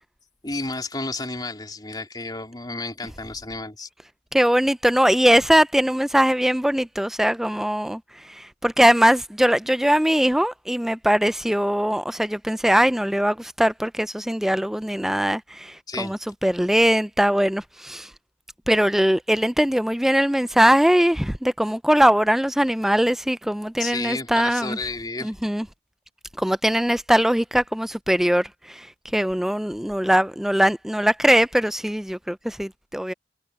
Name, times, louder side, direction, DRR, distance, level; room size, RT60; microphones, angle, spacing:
voice 1, 0.4-3.9 15.9-16.1 23.8-25.3, left 3 dB, 25° left, 3.7 m, -31 dB
voice 2, 4.3-8.0 8.3-18.1 18.7-24.8 25.2-25.6 26.4-28.9 29.1-33.1, equal, ahead, 0.3 m, -21 dB
head